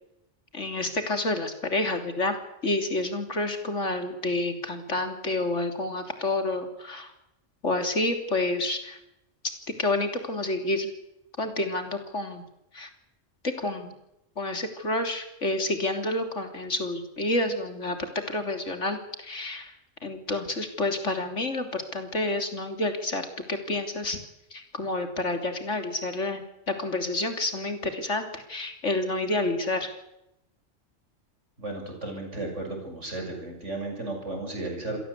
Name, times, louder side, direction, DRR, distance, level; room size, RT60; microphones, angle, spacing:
voice 1, 0.5-2.4 2.6-7.1 7.6-9.0 9.8-10.9 11.4-12.4 12.7-12.9 13.4-14.0 14.4-19.7 20.0-24.2 24.5-26.4 26.8-29.9, left 2 dB, 70° left, 6 dB, 3.6 m, -29 dB
voice 2, 31.6-35.0, right 2 dB, 75° right, 3 dB, 7.2 m, -34 dB
27.5 x 17.5 x 8.3 m, 0.84 s
omnidirectional pair, 1.3 m